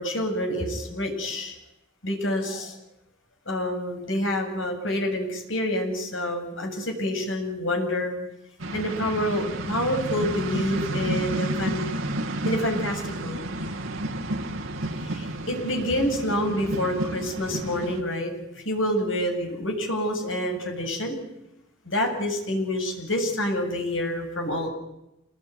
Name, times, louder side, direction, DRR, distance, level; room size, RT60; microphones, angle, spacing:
voice 1, 0.0-1.5 2.0-2.8 3.5-8.1 8.7-11.8 12.4-13.4 15.0-21.2 21.9-24.7, left 1 dB, 70° left, 2 dB, 7.3 m, -27 dB
sound 1, 8.6-18.0, right 1 dB, 80° right, 2.3 m, -31 dB
28.0 x 20.5 x 9.5 m, 0.89 s
head